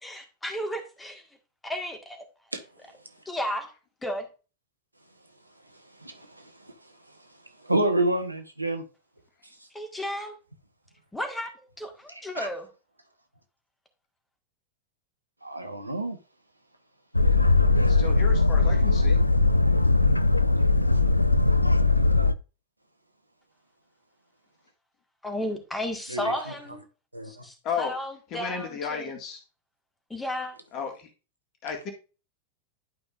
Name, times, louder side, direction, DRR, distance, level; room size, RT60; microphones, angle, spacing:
voice 1, 0.0-1.2 1.6-2.2 3.2-3.7 4.0-4.3 9.7-10.4 11.1-12.7 25.2-26.8 27.2-29.1 30.1-30.6, left 1 dB, 10° left, 1.7 m, -33 dB
voice 2, 6.0-6.7 7.6-8.8 12.3-12.5 15.4-16.2 20.9-21.1 26.1-26.5 27.1-27.4, right 1 dB, 85° right, 1.1 m, -29 dB
Boat Water vehicle, 17.1-22.3, left 3 dB, 85° left, 0.3 m, -20 dB
voice 3, 17.8-19.3 27.6-28.0 28.3-29.4 30.7-31.1 31.6-31.9, left 5 dB, 35° left, 2.0 m, -33 dB
11.5 x 5.3 x 2.5 m
figure-of-eight pair, 90°, 0 cm